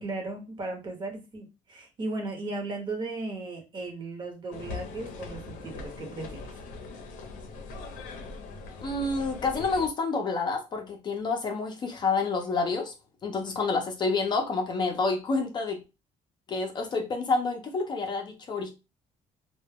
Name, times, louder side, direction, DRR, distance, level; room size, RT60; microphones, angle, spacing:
voice 1, 0.0-6.4, right 2 dB, 35° right, 0.8 m, -36 dB
sound 1, 4.5-9.9, left 4 dB, 85° left, 0.5 m, -41 dB
voice 2, 8.8-12.9 13.2-15.8 16.5-18.7, left 3 dB, 35° left, 0.5 m, -28 dB
2.1 x 2.0 x 3.3 m
cardioid pair, 155°, 13 cm